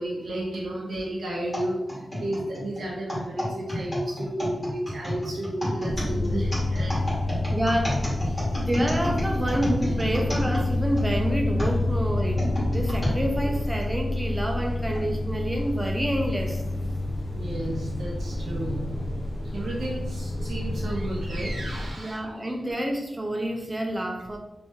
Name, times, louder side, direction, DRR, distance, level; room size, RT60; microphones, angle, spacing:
voice 1, 0.0-1.8 2.2-7.1 8.3-8.4 17.3-18.8 19.5-22.2, right 1 dB, 85° right, -4 dB, 0.6 m, -32 dB
sound 1, 1.5-11.1 11.6-13.2 13.8-13.9 14.8-15.0, equal, 25° left, 1.5 m, -31 dB
sound 2, 5.9-21.9, left 2 dB, 50° left, 0.7 m, -28 dB
voice 2, 7.5-8.0 8.7-16.6 22.0-24.4, right 1 dB, 15° right, 2 dB, 0.5 m, -28 dB
3.1 x 2.6 x 3.5 m, 0.94 s
wide cardioid pair, 130°, 0 cm